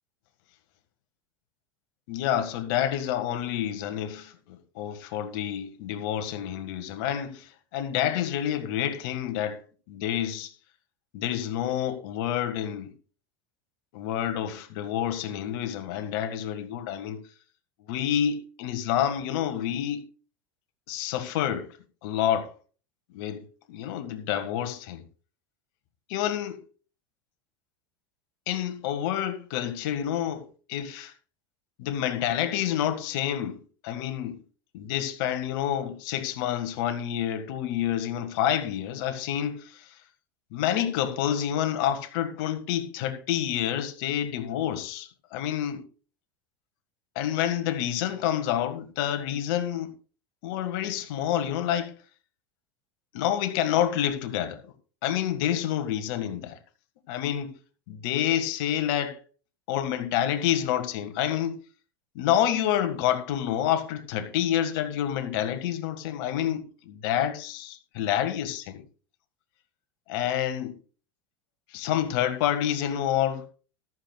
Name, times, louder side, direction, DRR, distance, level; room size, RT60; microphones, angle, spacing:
voice 1, 2.1-9.6 9.9-10.5 11.1-12.9 13.9-17.2 17.9-20.0 20.9-21.7 22.0-22.5 23.1-23.4 23.7-25.0 26.1-26.6 28.5-31.1 31.8-33.6 33.8-34.4 34.7-40.0 40.5-45.8 47.2-49.9 50.4-51.9 53.1-54.7 55.0-56.6 57.1-57.5 57.9-59.2 59.7-61.6 62.2-68.8 70.1-70.8 71.7-73.4, left 10 dB, 65° left, 1.8 m, -28 dB
14.0 x 12.5 x 2.4 m
hypercardioid pair, 100°, 13 cm